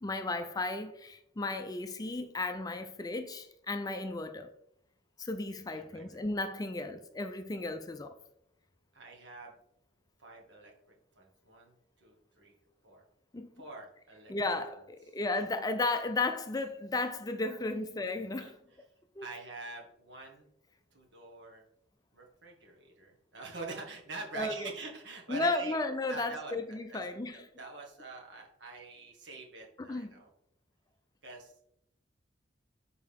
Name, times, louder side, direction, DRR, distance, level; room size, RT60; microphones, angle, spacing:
voice 1, 0.0-4.5 5.2-8.2 13.3-13.5 14.3-18.5 19.2-19.3 24.3-24.7 25.3-27.5 29.8-30.1, left 2 dB, 20° left, 0.4 m, -34 dB
voice 2, 5.7-6.2 8.9-9.5 10.2-10.7 11.2-12.5 12.8-13.0 13.6-14.3 17.5-17.6 18.4-18.5 19.2-20.5 20.9-21.6 22.1-25.8 26.1-27.0 27.3-30.3 31.2-31.5, right 3 dB, 70° right, 1.6 m, -45 dB
6.5 x 4.7 x 3.5 m
head